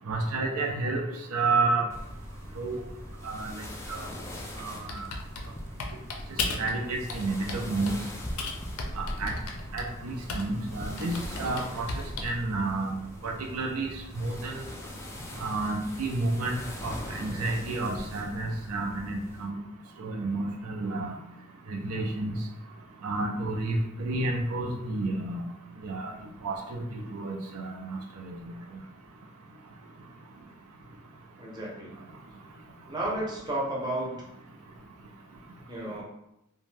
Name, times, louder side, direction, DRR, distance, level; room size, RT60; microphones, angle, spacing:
voice 1, 0.1-1.0 1.3-1.9 2.6-2.8 3.2-4.1 4.6-5.1 6.5-7.9 9.0-9.3 9.7-11.9 12.2-12.9 13.2-14.6 15.4-19.6 20.0-21.2 21.7-22.4 23.0-25.4 25.8-26.1 26.4-28.5, right 2 dB, 85° right, 0 dB, 0.5 m, -31 dB
sound 1, 1.9-19.5, equal, 15° left, 0.3 m, -41 dB
Typing, 4.9-6.8 7.1-8.0 8.4-10.6 11.0-12.4, left 3 dB, 75° left, 0.5 m, -35 dB
voice 2, 31.4-31.9 32.9-34.2 35.7-36.0, right 1 dB, 20° right, -4 dB, 0.7 m, -32 dB
2.5 x 2.2 x 3.2 m, 0.84 s
head